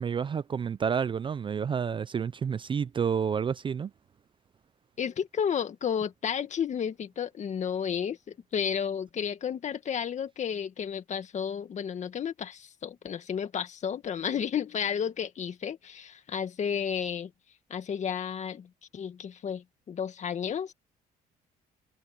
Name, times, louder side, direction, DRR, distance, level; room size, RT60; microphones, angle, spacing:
voice 1, 0.0-3.9, right 7 dB, 30° right, 0.4 m, -29 dB
voice 2, 5.0-8.2 8.5-17.3 17.7-20.7, left 8 dB, 45° left, 2.0 m, -32 dB
cardioid pair, 110°, 17 cm